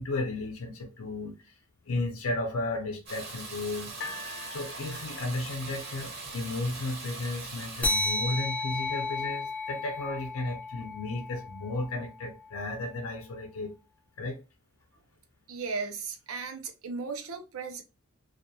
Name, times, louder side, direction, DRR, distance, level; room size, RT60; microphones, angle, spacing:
voice 1, 0.0-1.5 1.9-3.9 4.5-13.7 14.2-14.4, left 2 dB, 85° left, 0.6 m, -34 dB
Water tap faucet / Bathtub (filling or washing), 3.1-8.2, right 3 dB, 50° right, 0.9 m, -41 dB
sound 1, 4.0-7.2 8.0-8.1, left 2 dB, 50° left, 0.7 m, -45 dB
sound 2, 7.8-12.7, left 2 dB, 5° left, 0.3 m, -33 dB
voice 2, 15.5-17.8, right 4 dB, 80° right, 0.6 m, -36 dB
2.4 x 2.3 x 2.6 m
head